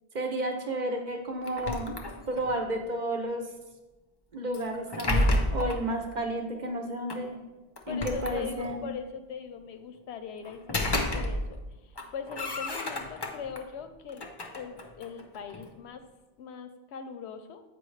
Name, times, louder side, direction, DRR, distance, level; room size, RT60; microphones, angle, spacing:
voice 1, 0.1-1.9 2.3-3.5 4.3-7.4 7.9-8.8, right 1 dB, 50° right, 3 dB, 0.7 m, -32 dB
sound 1, 1.4-2.6 4.5-5.9 7.1-7.2 7.8-8.9 10.4-11.7 12.0-13.6 14.1-15.7, left 1 dB, 35° left, 0.4 m, -31 dB
voice 2, 7.9-16.0 16.4-17.6, left 6 dB, 90° left, 9 dB, 0.9 m, -41 dB
7.8 x 4.9 x 3.2 m, 1.1 s
omnidirectional pair, 1.1 m